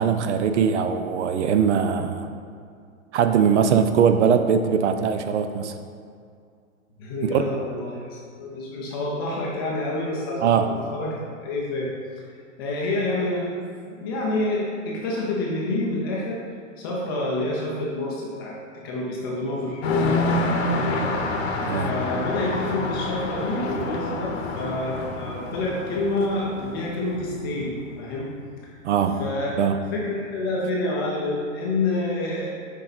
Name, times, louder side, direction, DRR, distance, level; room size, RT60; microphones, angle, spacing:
voice 1, 0.0-2.3 3.1-5.7 7.2-7.4 10.4-10.7 21.7-21.9 28.8-29.2 29.5-29.8, right 7 dB, 55° right, 8 dB, 0.5 m, -21 dB
voice 2, 7.0-11.9 12.6-13.6 13.9-16.4 16.8-18.6 18.8-28.3 28.6-28.7 29.2-29.6 29.9-32.5, left 2 dB, 20° left, -4 dB, 0.5 m, -28 dB
sound 1, 19.8-28.1, left 2 dB, 50° left, 0.9 m, -28 dB
6.7 x 4.6 x 4.0 m, 2.3 s
hypercardioid pair, 160°, 41 cm